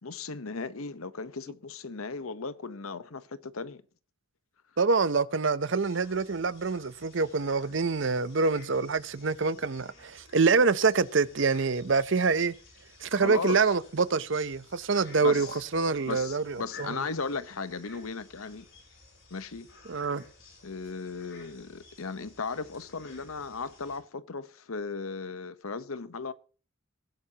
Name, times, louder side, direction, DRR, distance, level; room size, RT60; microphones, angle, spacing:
voice 1, 0.0-3.8 13.1-13.7 15.2-15.6 16.1-18.7 19.3-19.7 20.6-26.3, left 4 dB, 80° left, 0.9 m, -36 dB
voice 2, 4.8-12.5 13.0-17.0 19.9-20.2, right 4 dB, 55° right, 0.6 m, -26 dB
sound 1, 5.7-24.0, left 3 dB, 55° left, 6.9 m, -54 dB
20.5 x 11.0 x 2.9 m
head